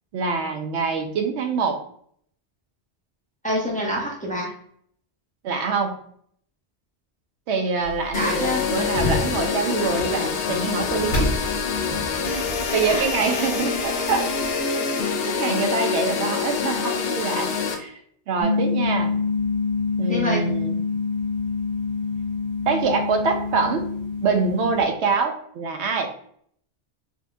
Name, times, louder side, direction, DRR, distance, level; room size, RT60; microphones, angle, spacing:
voice 1, 0.1-1.8 5.4-6.0 7.5-11.3 12.3-12.4 12.7-14.3 15.3-18.0 18.3-19.2 20.0-20.8 22.7-23.8 24.2-26.1, right 5 dB, 80° right, 5 dB, 0.9 m, -25 dB
voice 2, 3.4-4.5 8.1-8.6 12.8-13.1 13.4-13.5 20.1-20.4, equal, 10° left, -4 dB, 0.7 m, -26 dB
sound 1, 7.8-14.6, left 1 dB, 90° left, 1.9 m, -32 dB
sound 2, 8.1-17.8, left 5 dB, 65° left, 0.8 m, -26 dB
sound 3, 18.4-24.8, left 4 dB, 25° right, 1.2 m, -26 dB
4.2 x 2.6 x 2.2 m, 0.63 s
omnidirectional pair, 1.1 m